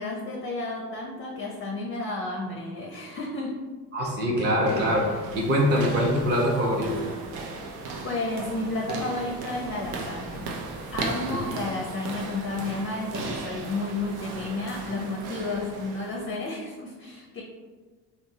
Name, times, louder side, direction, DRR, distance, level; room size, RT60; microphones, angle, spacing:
voice 1, 0.0-3.5 4.0-4.1 8.0-10.5 10.9-17.4, left 2 dB, 30° left, -1 dB, 0.4 m, -32 dB
voice 2, 3.9-5.0 5.3-7.1 11.3-11.4, equal, 25° right, -2 dB, 0.6 m, -23 dB
sound 1, 4.5-16.4, right 3 dB, 85° right, 0.5 m, -37 dB
2.9 x 2.0 x 2.7 m, 1.4 s
hypercardioid pair, 55°, 47 cm